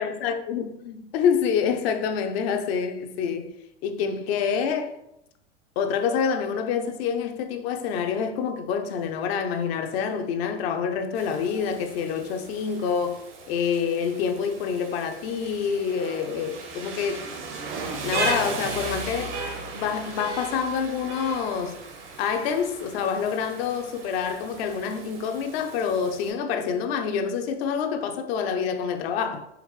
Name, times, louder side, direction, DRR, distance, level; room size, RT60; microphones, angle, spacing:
voice 1, 0.0-3.5 3.8-5.0 5.8-17.3 18.0-19.3 19.7-21.8 22.2-29.5, left 6 dB, 60° left, 0.7 m, -27 dB
Rain, 11.1-26.3, right 3 dB, 75° right, 1.3 m, -36 dB
5.0 x 3.1 x 3.2 m
hypercardioid pair, 105°, 35 cm